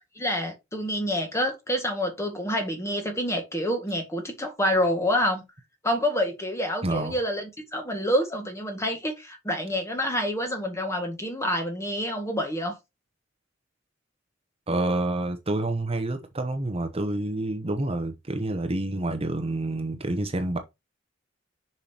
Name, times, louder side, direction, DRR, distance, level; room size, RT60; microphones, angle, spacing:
voice 1, 0.2-5.4 5.8-12.8, equal, 15° left, 1.9 m, -27 dB
voice 2, 6.8-7.2 14.7-20.6, right 2 dB, 30° right, 1.0 m, -28 dB
6.9 x 5.8 x 2.9 m
head